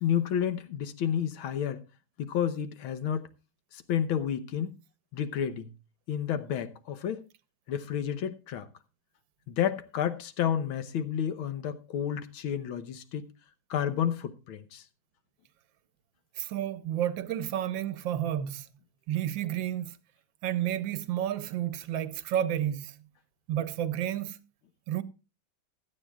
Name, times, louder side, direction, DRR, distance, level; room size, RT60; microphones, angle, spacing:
voice 1, 0.0-1.8 2.2-3.3 3.7-4.8 5.1-5.7 6.1-7.2 7.7-8.7 9.5-13.3 13.7-14.8, left 9 dB, 80° left, 1.8 m, -30 dB
voice 2, 16.4-18.7 19.1-20.0 20.4-23.0 23.5-24.4 24.9-25.0, right 11 dB, 75° right, 1.4 m, -31 dB
16.0 x 12.0 x 2.3 m
omnidirectional pair, 2.2 m